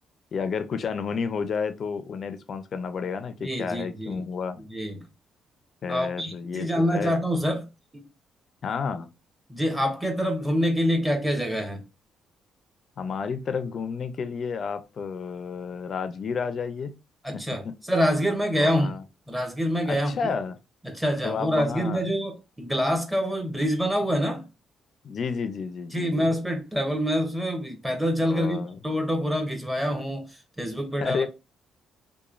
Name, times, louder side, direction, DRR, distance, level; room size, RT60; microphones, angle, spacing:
voice 1, 0.3-4.6 5.8-7.1 8.6-9.1 13.0-16.9 17.3-17.8 18.5-19.0 19.9-20.6 21.2-22.1 25.0-26.3 28.2-28.8 31.0-31.3, left 5 dB, 55° left, 0.4 m, -31 dB
voice 2, 3.4-4.2 4.7-5.0 5.9-7.7 7.9-8.0 9.5-11.8 17.2-18.9 19.3-20.2 20.8-24.4 25.9-30.3 30.6-31.2, equal, 10° right, 0.9 m, -26 dB
3.0 x 2.2 x 2.4 m
cardioid pair, 90°, 0 cm